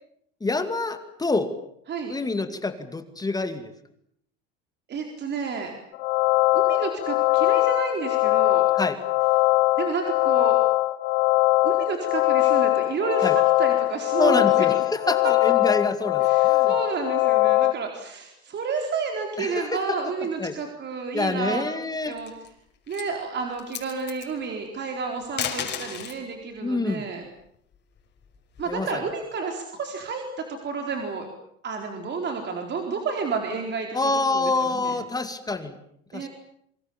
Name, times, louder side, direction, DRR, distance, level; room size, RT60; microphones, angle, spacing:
voice 1, 0.4-1.5 2.1-3.7 8.7-9.0 13.2-13.4 14.2-16.7 19.4-20.0 20.4-20.5 21.1-22.2 26.6-27.1 28.7-29.0 33.9-35.7 36.1-36.3, left 3 dB, 10° left, 8 dB, 2.3 m, -27 dB
voice 2, 4.9-5.7 6.5-8.6 9.8-10.6 11.6-14.7 16.2-21.7 22.0-22.3 22.9-27.2 28.6-31.3 31.6-35.0 36.1-36.3, right 5 dB, 35° right, 3 dB, 4.3 m, -31 dB
sound 1, 5.9-17.7, left 20 dB, 85° left, 1.1 m, -21 dB
sound 2, 22.0-22.5 22.9-23.1 23.5-24.3 25.2-26.2 27.7-28.9, left 8 dB, 35° left, 5.7 m, -33 dB
27.0 x 24.5 x 7.2 m, 0.70 s
supercardioid pair, 125°, 31 cm